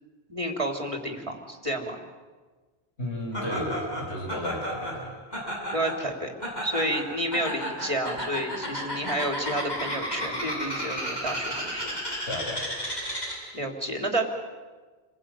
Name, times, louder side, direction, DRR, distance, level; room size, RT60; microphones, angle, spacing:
voice 1, 0.3-2.0 5.7-6.3 6.6-12.0 13.5-14.2, right 1 dB, 30° right, 3 dB, 3.6 m, -30 dB
voice 2, 3.0-5.1 12.3-12.7, left 1 dB, 80° left, 2 dB, 5.4 m, -33 dB
Laughter, 3.3-13.6, equal, 40° left, 7.6 m, -33 dB
29.5 x 20.5 x 9.2 m, 1.4 s
omnidirectional pair, 1.1 m